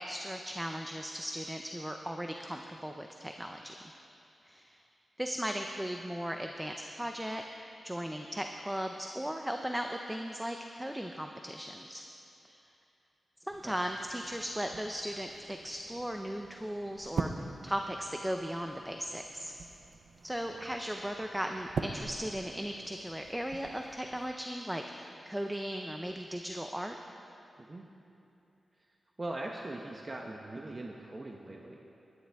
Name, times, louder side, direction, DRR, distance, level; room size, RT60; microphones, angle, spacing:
voice 1, 0.0-3.9 4.4-4.8 5.2-7.4 7.8-12.0 12.4-12.6 13.4-19.5 20.2-27.0, equal, 5° right, 4 dB, 0.6 m, -37 dB
sound 1, 13.5-24.3, right 4 dB, 80° right, 0.6 m, -43 dB
voice 2, 29.2-31.8, right 2 dB, 30° right, 0 dB, 0.9 m, -41 dB
20.5 x 10.0 x 3.5 m, 2.8 s
wide cardioid pair, 95°, 0 cm